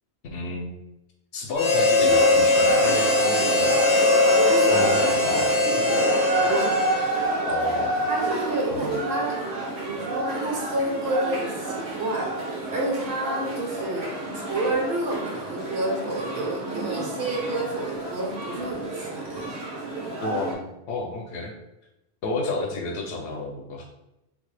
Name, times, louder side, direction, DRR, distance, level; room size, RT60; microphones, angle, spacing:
voice 1, 0.3-0.7 1.3-3.7 4.7-5.5 7.5-8.0 8.7-8.9 20.2-21.5 22.2-23.9, left 3 dB, 85° left, 0 dB, 0.8 m, -31 dB
Harmonica, 1.6-7.3, left 2 dB, 40° left, 0.4 m, -20 dB
sound 1, 2.1-20.5, right 2 dB, 85° right, 1.1 m, -30 dB
voice 2, 4.4-7.1 8.1-9.4 9.8-12.3 12.7-19.5, right 1 dB, 60° right, -2 dB, 1.0 m, -29 dB
3.5 x 2.2 x 3.2 m, 0.90 s
omnidirectional pair, 1.1 m